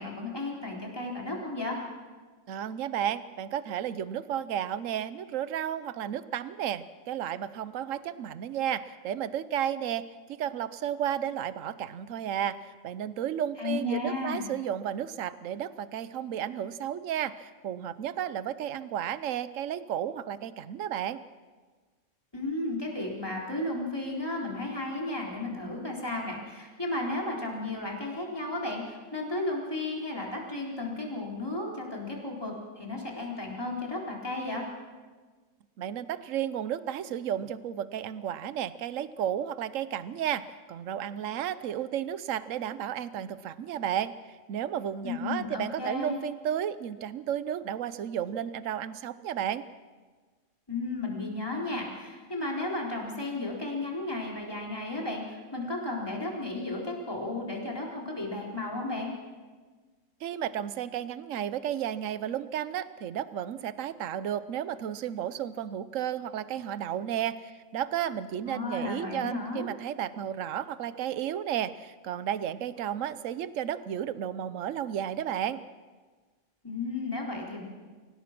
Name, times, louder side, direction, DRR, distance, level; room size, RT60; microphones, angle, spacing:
voice 1, 0.0-1.8 13.6-14.5 22.3-34.6 45.0-46.2 50.7-59.1 68.4-69.7 76.6-77.6, left 2 dB, 15° left, -2 dB, 4.1 m, -34 dB
voice 2, 2.5-21.2 35.8-40.4 40.7-49.6 60.2-75.6, right 10 dB, 70° right, 14 dB, 1.1 m, -33 dB
25.0 x 17.5 x 6.0 m, 1.4 s
omnidirectional pair, 1.4 m